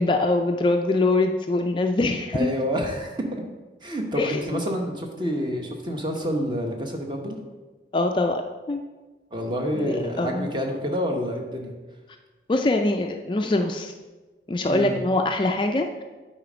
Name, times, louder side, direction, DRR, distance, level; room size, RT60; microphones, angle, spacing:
voice 1, 0.0-2.5 4.2-4.6 7.9-8.4 8.7-8.8 9.8-10.5 12.5-13.9 14.5-15.9, left 2 dB, 25° left, 5 dB, 0.3 m, -23 dB
voice 2, 2.3-3.2 3.8-7.4 9.3-11.7 14.7-15.0, equal, 25° right, 2 dB, 1.0 m, -28 dB
8.8 x 4.3 x 5.0 m, 1.2 s
head